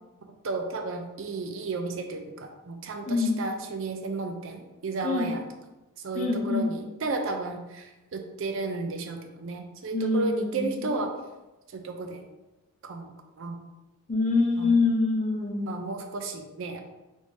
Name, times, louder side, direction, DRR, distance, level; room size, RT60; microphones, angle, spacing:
voice 1, 0.4-5.4 6.0-11.1 11.7-12.2 12.8-13.6 14.6-14.8 15.6-16.8, right 3 dB, 60° right, 5 dB, 0.4 m, -33 dB
voice 2, 3.1-3.4 5.0-5.3 6.2-6.7 9.9-10.6 14.1-15.7, left 3 dB, 35° left, 1 dB, 0.5 m, -25 dB
3.5 x 2.7 x 3.1 m, 1.1 s
head